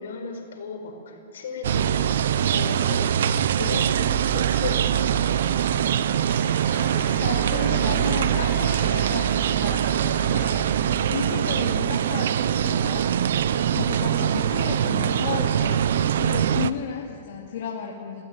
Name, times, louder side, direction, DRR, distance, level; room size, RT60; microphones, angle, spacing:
voice 1, 0.0-3.1 3.5-5.9, left 3 dB, 85° left, 4 dB, 5.1 m, -35 dB
sound 1, 1.6-16.7, right 9 dB, 80° right, 0.8 m, -23 dB
sound 2, 2.5-3.1 5.6-17.0, left 4 dB, 35° left, 4.7 m, -45 dB
voice 2, 6.8-18.2, left 7 dB, 70° left, -2 dB, 2.7 m, -34 dB
23.0 x 15.5 x 9.2 m, 2.3 s
hypercardioid pair, 140°, 0 cm